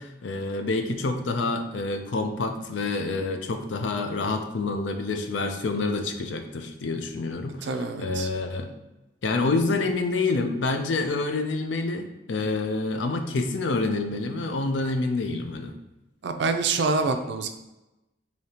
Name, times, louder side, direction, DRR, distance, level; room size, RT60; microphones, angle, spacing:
voice 1, 0.0-8.7 9.2-15.7, left 3 dB, 70° left, 6 dB, 0.5 m, -27 dB
voice 2, 7.6-8.3 16.2-17.5, right 4 dB, 65° right, 7 dB, 0.4 m, -26 dB
4.9 x 2.8 x 2.8 m, 1.0 s
head